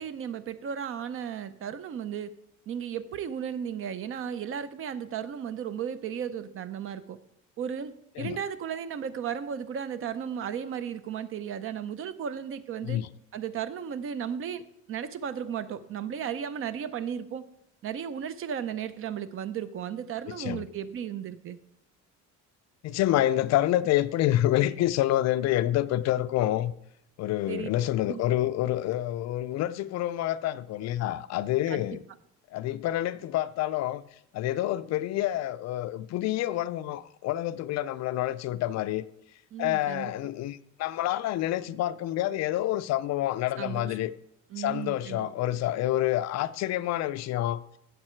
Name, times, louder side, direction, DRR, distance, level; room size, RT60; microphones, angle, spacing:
voice 1, 0.0-2.3 2.7-7.2 7.6-13.0 13.3-14.6 14.9-17.4 17.8-21.6 27.5-27.7 28.1-28.3 31.7-32.0 39.5-40.1 43.6-44.0 44.5-45.3, right 8 dB, 45° right, 0.6 m, -35 dB
voice 2, 20.3-20.6 22.8-26.7 27.2-32.0 32.5-34.0 34.3-39.1 39.6-44.1 44.6-47.6, left 13 dB, 60° left, 0.5 m, -28 dB
15.5 x 6.6 x 4.5 m
cardioid pair, 165°, 31 cm